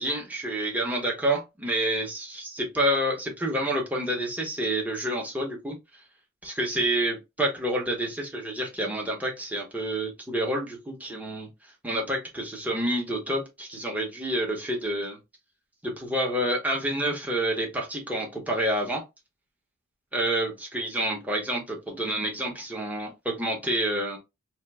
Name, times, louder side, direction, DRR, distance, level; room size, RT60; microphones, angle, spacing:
voice 1, 0.0-5.8 6.4-11.5 11.8-15.2 15.8-19.0 20.1-24.2, right 1 dB, 5° right, 1.0 m, -28 dB
4.5 x 2.6 x 2.3 m
head